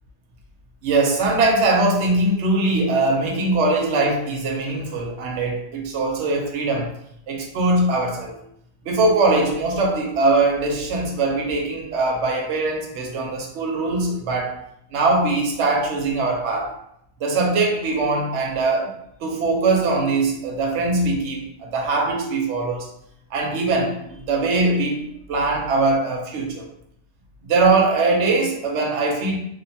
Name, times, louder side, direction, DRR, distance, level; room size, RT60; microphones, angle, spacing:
voice 1, 0.8-6.9 7.3-8.3 8.8-14.6 14.9-16.7 17.2-22.9 23.3-25.0 25.3-26.6 27.5-29.4, right 3 dB, 70° right, 0 dB, 0.9 m, -21 dB
2.7 x 2.1 x 2.7 m, 0.74 s
omnidirectional pair, 1.3 m